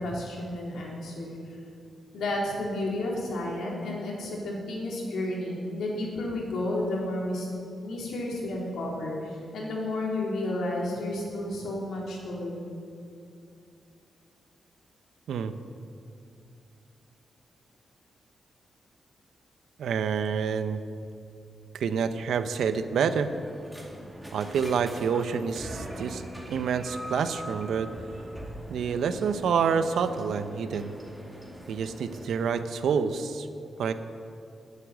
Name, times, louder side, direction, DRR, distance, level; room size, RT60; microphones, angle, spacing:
voice 1, 0.0-1.4 2.1-7.5 7.8-12.8, left 1 dB, 90° left, -3 dB, 3.5 m, -32 dB
voice 2, 19.8-20.8 21.7-23.3 24.3-27.9 28.7-30.9 31.7-33.5 33.8-33.9, right 6 dB, 90° right, 10 dB, 0.8 m, -28 dB
sound 1, 23.1-32.3, equal, ahead, 2.1 m, -42 dB
13.0 x 8.4 x 9.0 m, 2.5 s
wide cardioid pair, 135°, 0 cm